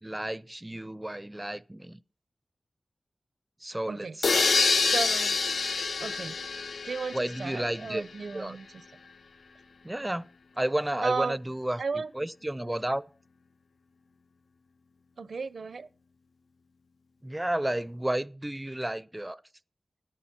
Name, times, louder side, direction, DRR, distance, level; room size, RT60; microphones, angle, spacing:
voice 1, 0.0-2.0 3.6-4.5 7.1-8.0 8.3-8.6 9.8-10.2 10.6-13.0 17.2-19.4, right 1 dB, 15° right, 0.5 m, -32 dB
sound 1, 4.2-8.0, left 4 dB, 80° left, 0.5 m, -27 dB
voice 2, 4.8-5.4 6.0-6.4 6.8-8.7 11.0-11.4 11.8-12.1 15.2-15.9, right 4 dB, 75° right, 0.7 m, -34 dB
13.5 x 10.5 x 4.3 m
wide cardioid pair, 100°, 0 cm